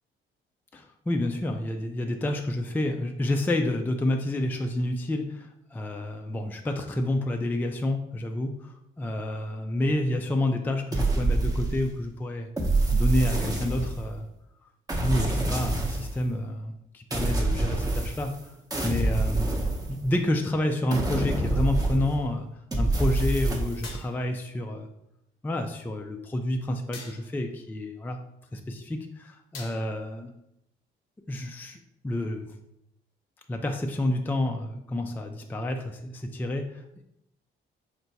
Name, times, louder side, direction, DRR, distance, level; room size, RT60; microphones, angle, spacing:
voice 1, 0.7-12.5 12.9-14.3 15.0-18.3 18.8-19.5 19.9-22.5 22.7-24.9 25.4-28.2 28.5-30.3 31.3-32.5 33.5-37.0, left 1 dB, 10° left, 4 dB, 0.3 m, -29 dB
sound 1, 10.9-12.0 12.6-14.2 14.9-16.2 17.1-18.4 18.7-20.3 20.9-22.3 22.7-24.0, right 2 dB, 20° right, 0.7 m, -26 dB
sound 2, 23.8-24.4 26.9-27.5 29.5-30.1, left 4 dB, 80° left, 0.7 m, -44 dB
4.5 x 2.2 x 3.9 m, 0.81 s
cardioid pair, 90°, 20 cm